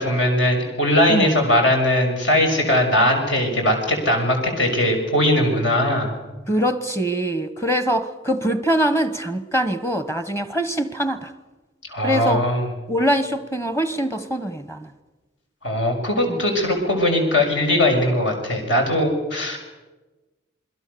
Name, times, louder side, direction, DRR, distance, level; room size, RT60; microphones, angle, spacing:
voice 1, 0.0-6.1 11.9-12.7 15.6-19.6, left 1 dB, 75° left, 6.6 m, -20 dB
voice 2, 6.5-11.3 12.0-12.4 12.9-14.9 16.3-16.4, right 1 dB, 15° left, 1.2 m, -23 dB
27.5 x 22.0 x 7.0 m
head